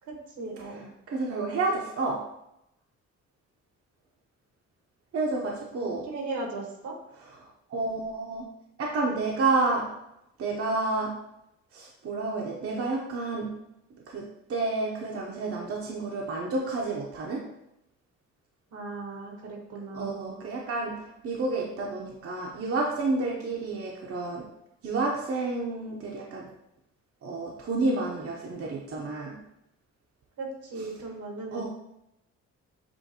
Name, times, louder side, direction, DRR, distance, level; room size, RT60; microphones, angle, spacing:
voice 1, 0.0-0.9 6.0-6.9 18.7-20.3 30.4-31.7, right 3 dB, 80° right, 0 dB, 1.5 m, -37 dB
voice 2, 1.1-2.3 5.1-6.0 7.7-8.5 8.8-9.9 10.4-11.2 11.7-13.5 14.1-17.4 19.9-24.4 24.8-26.5 27.2-29.4 31.5-31.7, right 3 dB, 50° right, -2 dB, 0.8 m, -30 dB
7.0 x 2.6 x 2.9 m, 0.83 s
cardioid pair, 90°, 30 cm